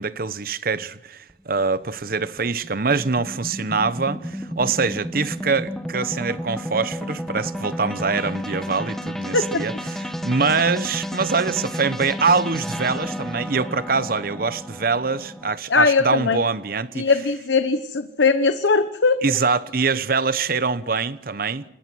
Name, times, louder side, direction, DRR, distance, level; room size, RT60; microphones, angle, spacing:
voice 1, 0.0-17.1 19.2-21.6, right 4 dB, 50° right, 0.9 m, -24 dB
sound 1, 1.3-15.5, equal, ahead, 1.6 m, -32 dB
voice 2, 15.7-16.4 17.0-19.2, left 4 dB, 80° left, 1.0 m, -20 dB
27.0 x 22.0 x 6.2 m
head